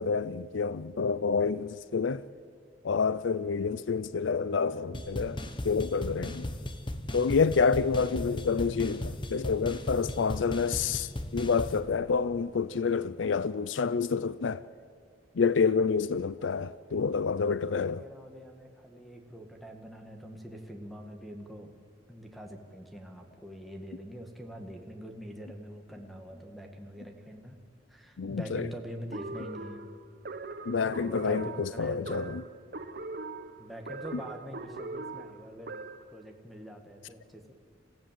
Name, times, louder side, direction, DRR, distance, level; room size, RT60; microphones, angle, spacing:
voice 1, 0.0-2.2 2.8-5.4 5.6-6.5 7.1-14.6 15.4-18.0 28.2-28.7 30.7-32.4, left 5 dB, 90° left, 0.5 m, -28 dB
sound 1, 4.9-11.8, left 1 dB, 25° left, 1.2 m, -37 dB
voice 2, 17.7-21.8 22.1-27.6 27.9-29.8 31.0-32.2 33.6-35.7 36.1-37.5, equal, ahead, 1.7 m, -44 dB
sound 2, 29.1-36.2, right 3 dB, 55° right, 1.3 m, -41 dB
28.5 x 15.5 x 7.5 m
head